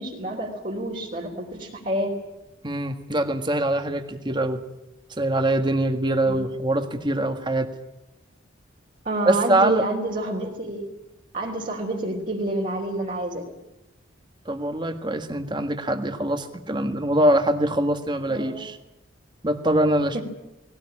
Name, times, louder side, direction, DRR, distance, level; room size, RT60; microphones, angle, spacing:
voice 1, 0.0-2.1 6.2-6.4 9.1-10.9 11.3-13.4 18.3-18.6 20.1-20.2, right 1 dB, 40° right, -2 dB, 3.4 m, -28 dB
voice 2, 2.6-4.6 5.1-7.7 9.2-9.8 14.4-18.8 19.4-20.2, right 1 dB, 25° right, 7 dB, 1.6 m, -23 dB
20.0 x 18.0 x 10.0 m, 0.94 s
head